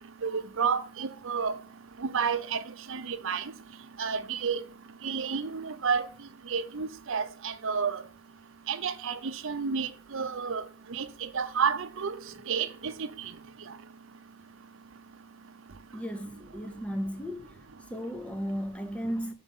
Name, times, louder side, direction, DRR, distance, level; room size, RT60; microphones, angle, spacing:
voice 1, 0.2-1.5 2.0-2.6 2.9-3.4 4.0-4.6 5.0-6.1 6.5-8.0 8.7-10.6 10.9-12.2 12.5-13.1, right 6 dB, 60° right, 0.6 m, -30 dB
voice 2, 15.9-17.6 17.9-19.3, equal, 5° left, 0.6 m, -35 dB
6.8 x 4.1 x 5.3 m
head